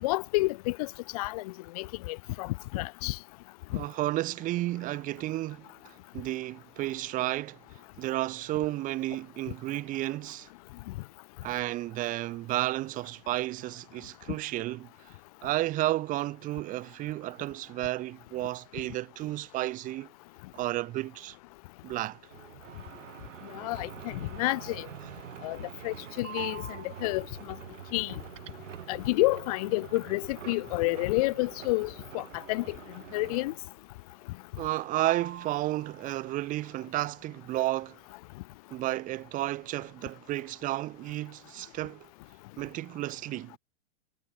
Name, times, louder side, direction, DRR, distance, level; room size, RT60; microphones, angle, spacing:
voice 1, 0.0-3.2 23.5-24.9 25.4-25.6 25.8-26.6 27.0-27.2 27.9-28.1 28.9-32.8 33.1-33.5, left 21 dB, 30° left, 0.8 m, -29 dB
voice 2, 3.7-7.6 8.0-10.5 11.4-14.9 15.4-20.1 20.5-21.4 21.8-22.2 34.6-38.0 38.7-42.1 42.6-43.6, right 16 dB, 20° right, 2.7 m, -32 dB
sound 1, 22.3-33.8 34.1-34.7 34.9-36.2, right 10 dB, 85° right, 4.1 m, -44 dB
supercardioid pair, 170°, 37 cm